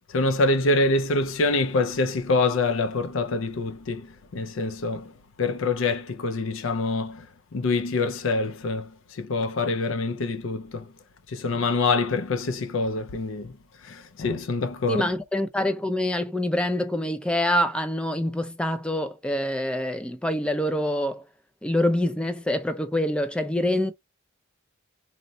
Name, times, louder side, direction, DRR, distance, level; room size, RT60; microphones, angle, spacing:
voice 1, 0.1-5.1 5.4-7.3 7.5-10.9 11.3-13.5 13.8-15.0, left 3 dB, 65° left, 0.5 m, -25 dB
voice 2, 14.9-21.2 21.6-23.9, left 1 dB, 5° left, 0.4 m, -25 dB
4.1 x 2.1 x 2.7 m
head